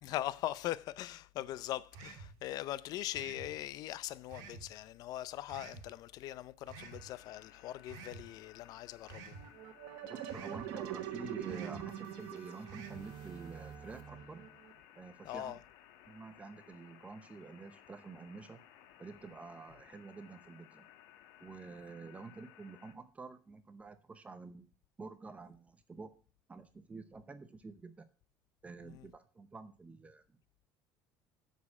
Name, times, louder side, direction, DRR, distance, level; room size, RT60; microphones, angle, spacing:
voice 1, 0.0-9.3 15.2-15.6 28.8-29.1, left 14 dB, 60° left, 0.5 m, -41 dB
sound 1, 1.9-2.3 3.1-3.5 4.3-4.7 5.5-5.9 6.7-7.0 7.9-8.2 9.1-9.4 10.3-10.6 11.5-11.8 12.7-13.0, right 5 dB, 70° right, 1.7 m, -49 dB
sound 2, 6.8-23.0, left 11 dB, 90° left, 1.2 m, -60 dB
sound 3, 9.3-14.7, right 10 dB, 85° right, 1.3 m, -44 dB
voice 2, 10.1-14.4 15.0-15.6 16.1-18.6 19.0-20.9 21.4-24.7 25.0-26.1 26.5-28.1 28.6-30.2, right 4 dB, 20° right, 0.7 m, -49 dB
7.1 x 6.5 x 7.1 m
cardioid pair, 140°, 8 cm